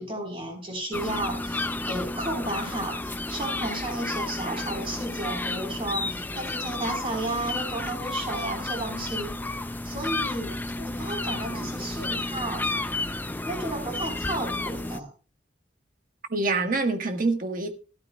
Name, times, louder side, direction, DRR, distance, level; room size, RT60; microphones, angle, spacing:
voice 1, 0.0-9.3 9.8-10.5 10.8-12.7 13.5-15.1, right 1 dB, 30° right, 3.8 m, -33 dB
sound 1, 0.9-15.0, left 2 dB, 10° left, 0.5 m, -32 dB
voice 2, 10.5-10.9 16.3-17.7, right 3 dB, 50° right, 1.4 m, -27 dB
16.5 x 12.5 x 2.2 m
head